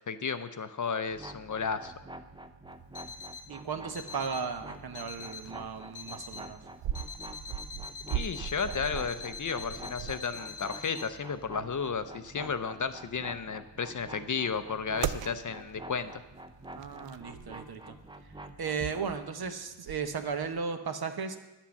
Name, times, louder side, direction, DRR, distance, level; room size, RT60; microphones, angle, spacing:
voice 1, 0.1-1.9 8.1-16.2, left 5 dB, 40° left, 11 dB, 0.6 m, -33 dB
sound 1, 1.1-19.2, right 1 dB, 10° right, 0.5 m, -48 dB
sound 2, 1.5-20.6, right 10 dB, 70° right, 0.6 m, -42 dB
Alarm, 2.9-3.5 3.9-4.5 4.9-5.5 5.9-6.5 6.9-11.1, left 5 dB, 60° left, 1.1 m, -44 dB
voice 2, 3.5-6.6 16.7-18.0 18.6-21.4, right 5 dB, 55° right, 8 dB, 1.0 m, -35 dB
10.5 x 7.3 x 7.0 m, 1.0 s
wide cardioid pair, 130°, 46 cm